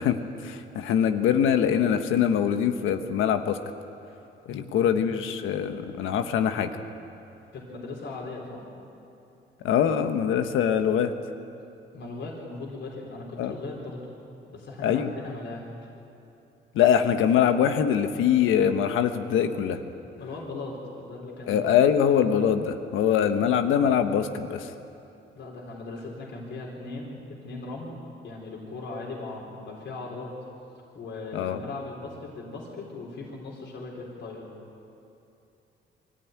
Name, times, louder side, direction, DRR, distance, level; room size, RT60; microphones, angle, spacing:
voice 1, 0.0-3.6 4.5-6.7 9.6-11.1 13.4-13.5 14.8-15.1 16.7-19.8 21.5-24.7 31.3-31.6, left 8 dB, 90° left, 8 dB, 1.3 m, -23 dB
voice 2, 4.5-4.9 7.5-8.6 11.9-14.1 14.5-15.6 20.2-21.6 25.4-28.0 28.2-30.3 30.9-34.4, left 3 dB, 65° left, -3 dB, 4.3 m, -38 dB
23.5 x 14.5 x 9.6 m, 2.8 s
cardioid pair, 90°, 20 cm